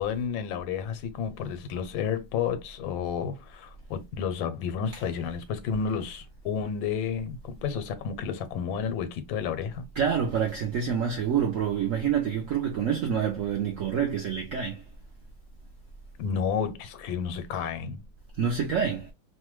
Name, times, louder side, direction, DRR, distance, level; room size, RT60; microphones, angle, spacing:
voice 1, 0.0-9.9 16.2-18.0, left 7 dB, 85° left, 1.3 m, -31 dB
voice 2, 10.0-14.8 18.3-19.1, right 7 dB, 75° right, 0.7 m, -27 dB
3.1 x 2.1 x 3.0 m
omnidirectional pair, 2.1 m